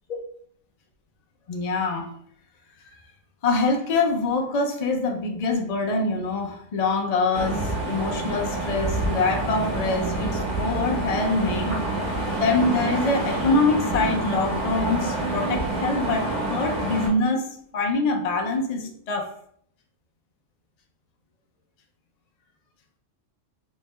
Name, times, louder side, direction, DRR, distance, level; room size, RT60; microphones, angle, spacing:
voice 1, 1.5-2.1 3.4-11.8 12.3-16.2 16.5-17.5 17.7-19.3, left 3 dB, 60° left, 2 dB, 0.4 m, -24 dB
sound 1, 7.3-17.1, right 2 dB, 30° right, 1.5 m, -27 dB
3.2 x 2.7 x 3.2 m, 0.63 s
omnidirectional pair, 1.4 m